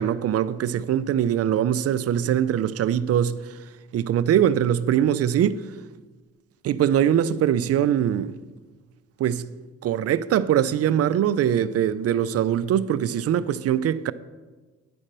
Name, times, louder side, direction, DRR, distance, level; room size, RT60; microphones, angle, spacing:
voice 1, 0.0-3.4 3.9-5.6 6.6-8.4 9.2-9.5 9.8-14.1, right 10 dB, 55° right, 0.4 m, -22 dB
9.8 x 4.3 x 6.6 m
cardioid pair, 90°, 30 cm